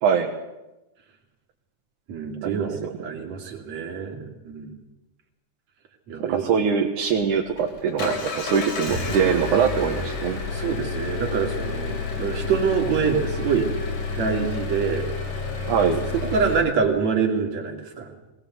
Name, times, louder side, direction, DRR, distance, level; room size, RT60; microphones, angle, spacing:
voice 1, 2.1-4.7 6.1-6.5 8.0-8.2 10.5-13.7 14.2-15.0 16.1-18.1, right 6 dB, 65° right, 2 dB, 3.9 m, -25 dB
voice 2, 6.3-10.4 15.7-16.0, right 6 dB, 85° right, 2 dB, 3.0 m, -23 dB
Engine, 7.1-16.6, left 4 dB, 80° left, 5.1 m, -30 dB
20.5 x 20.0 x 8.0 m, 1.0 s
omnidirectional pair, 3.5 m